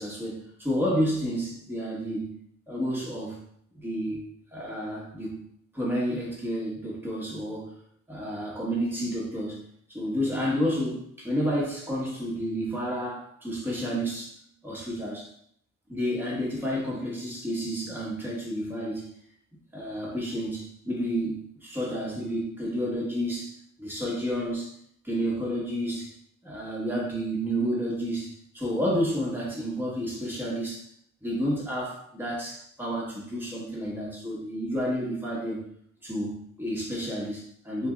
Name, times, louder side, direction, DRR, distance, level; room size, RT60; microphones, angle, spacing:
voice 1, 0.0-2.4 2.7-3.4 3.7-5.4 5.7-7.7 8.1-9.6 9.9-15.3 15.9-19.1 19.7-24.7 25.0-26.1 26.4-30.9 31.2-35.6 36.0-37.9, equal, 5° right, -4 dB, 1.1 m, -30 dB
5.7 x 2.2 x 2.3 m, 0.66 s
cardioid pair, 50°, 34 cm